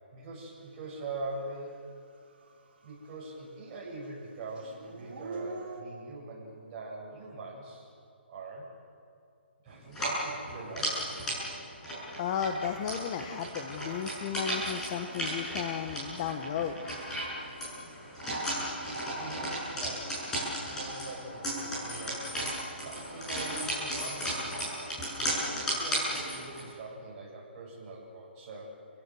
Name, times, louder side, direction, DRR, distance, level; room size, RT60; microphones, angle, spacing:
voice 1, 0.1-1.8 2.8-7.9 8.3-8.7 9.6-11.4 19.2-20.2 20.7-24.8 25.2-28.7, right 2 dB, 25° right, -4 dB, 7.5 m, -43 dB
Dog / Siren, 1.5-1.6 2.0-3.5 3.7-5.8, right 4 dB, 55° right, 4.6 m, -43 dB
sound 1, 9.9-26.7, right 1 dB, 10° left, 7.4 m, -35 dB
voice 2, 12.2-16.8, left 8 dB, 30° left, 6 dB, 1.2 m, -34 dB
29.5 x 17.5 x 7.8 m, 2.5 s
hypercardioid pair, 165°, 6 cm